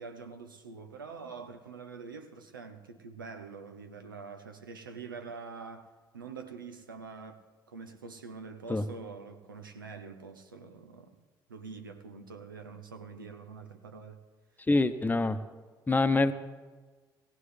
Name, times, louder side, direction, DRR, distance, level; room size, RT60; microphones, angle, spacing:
voice 1, 0.0-5.9 6.1-11.2 11.5-14.2, right 5 dB, 90° right, 0.7 m, -45 dB
voice 2, 14.7-15.4 15.9-16.3, left 2 dB, 15° left, 0.9 m, -25 dB
17.5 x 16.5 x 3.3 m
figure-of-eight pair, 50°, 11 cm